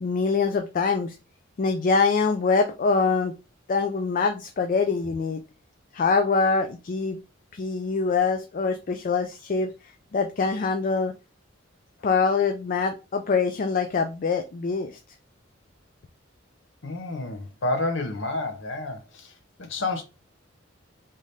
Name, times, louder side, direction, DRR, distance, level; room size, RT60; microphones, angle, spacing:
voice 1, 0.0-1.2 1.6-3.3 3.7-5.4 5.9-7.2 7.5-9.7 10.1-11.1 12.0-15.0, left 4 dB, 45° left, 0.4 m, -24 dB
voice 2, 16.8-19.3 19.6-20.0, left 2 dB, 65° left, 0.8 m, -29 dB
3.7 x 2.7 x 3.2 m
head